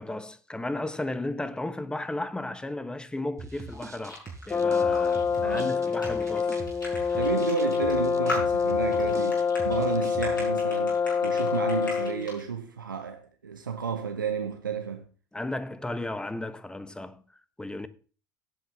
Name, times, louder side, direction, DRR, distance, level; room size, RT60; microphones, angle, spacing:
voice 1, 0.0-6.6 7.0-7.2 15.3-17.9, left 2 dB, 10° left, 1.2 m, -35 dB
sound 1, 3.4-10.5, right 4 dB, 30° right, 1.8 m, -43 dB
sound 2, 3.5-12.4, left 1 dB, 90° left, 5.6 m, -39 dB
Brass instrument, 4.5-12.3, left 6 dB, 25° left, 0.5 m, -26 dB
voice 2, 5.3-5.7 7.2-15.0, right 6 dB, 85° right, 0.9 m, -32 dB
17.5 x 8.2 x 3.4 m
hypercardioid pair, 70°, 10 cm